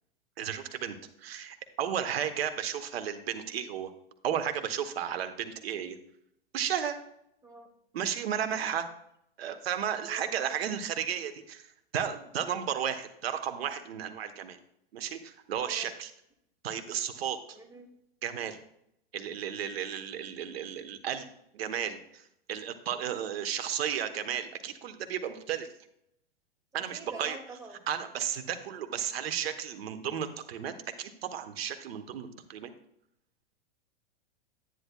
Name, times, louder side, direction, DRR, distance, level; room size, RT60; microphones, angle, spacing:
voice 1, 0.4-3.9 4.2-6.0 6.5-7.0 7.9-8.9 9.4-11.7 11.9-14.6 14.9-16.1 16.6-17.6 18.2-18.6 19.1-21.3 21.5-25.7 26.7-27.4 27.9-32.7, right 9 dB, 70° right, 9 dB, 1.1 m, -33 dB
voice 2, 10.0-10.4 12.6-12.8 15.6-16.0 17.5-17.9 26.7-27.8, right 2 dB, 10° right, 5 dB, 1.1 m, -47 dB
10.0 x 9.6 x 2.3 m, 0.76 s
hypercardioid pair, 125°, 31 cm